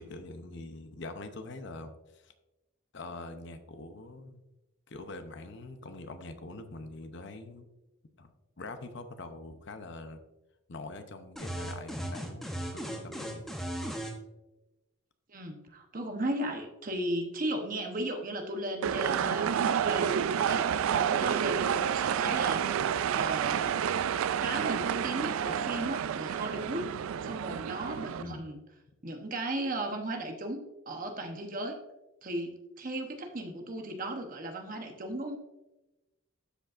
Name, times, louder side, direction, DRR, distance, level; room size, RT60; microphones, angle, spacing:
voice 1, 0.0-2.3 2.9-4.4 4.9-7.7 8.2-8.3 8.6-10.2 10.7-13.5 28.2-28.4, left 2 dB, 55° left, 8 dB, 0.7 m, -44 dB
sound 1, 11.4-14.2, right 1 dB, ahead, 0.7 m, -37 dB
voice 2, 15.3-23.8 24.4-28.6 29.0-30.6 30.9-31.8 32.2-35.4, right 1 dB, 40° right, 4 dB, 0.9 m, -36 dB
sound 2, 18.8-28.2, right 8 dB, 75° right, 0.3 m, -29 dB
13.0 x 5.2 x 2.5 m, 1.0 s
head